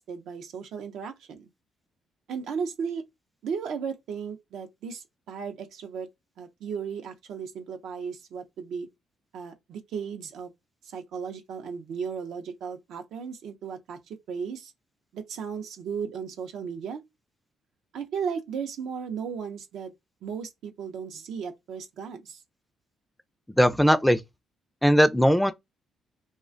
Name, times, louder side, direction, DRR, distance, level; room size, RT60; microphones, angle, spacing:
voice 1, 0.0-1.5 2.3-3.0 3.4-6.1 6.4-8.9 9.3-10.5 10.8-14.7 15.1-17.0 17.9-19.9 20.2-22.4, right 6 dB, 80° right, 0.4 m, -35 dB
voice 2, 23.6-24.2 24.8-25.5, equal, 5° left, 0.3 m, -19 dB
2.4 x 2.1 x 2.4 m
cardioid pair, 90°, 0 cm